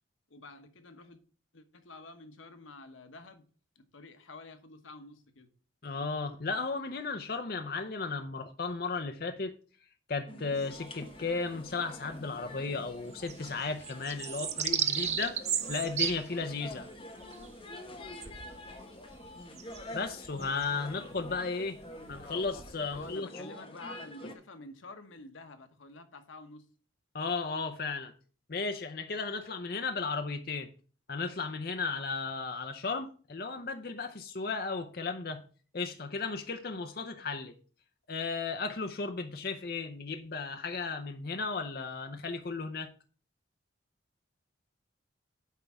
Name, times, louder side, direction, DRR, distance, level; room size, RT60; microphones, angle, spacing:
voice 1, 0.3-1.2 1.5-3.4 3.7-5.5 22.9-26.7, left 3 dB, 85° left, 1.1 m, -49 dB
voice 2, 5.8-9.5 10.1-16.9 19.9-21.8 22.1-23.3 27.1-28.1 28.5-30.7 31.1-35.4 35.7-37.5 38.1-42.9, left 4 dB, 50° left, 0.7 m, -35 dB
sound 1, 10.3-24.3, left 1 dB, 30° left, 1.1 m, -47 dB
sound 2, 10.6-11.7 12.1-12.2 12.4-23.1, right 8 dB, 35° right, 0.5 m, -36 dB
9.2 x 3.6 x 6.8 m
head